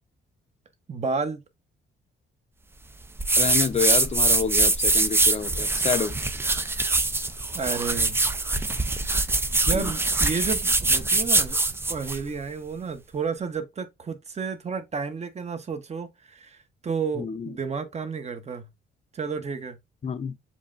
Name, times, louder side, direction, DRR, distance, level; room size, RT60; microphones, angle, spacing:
voice 1, 0.9-1.4 7.5-8.2 9.6-11.6 11.9-18.7 19.1-19.8, right 5 dB, 35° right, 0.9 m, -31 dB
sound 1, 3.2-12.2, right 2 dB, 10° right, 0.4 m, -23 dB
voice 2, 3.4-6.2 9.6-9.9 17.2-17.6 20.0-20.4, left 6 dB, 35° left, 0.6 m, -28 dB
7.1 x 2.4 x 2.4 m
cardioid pair, 90°, 20 cm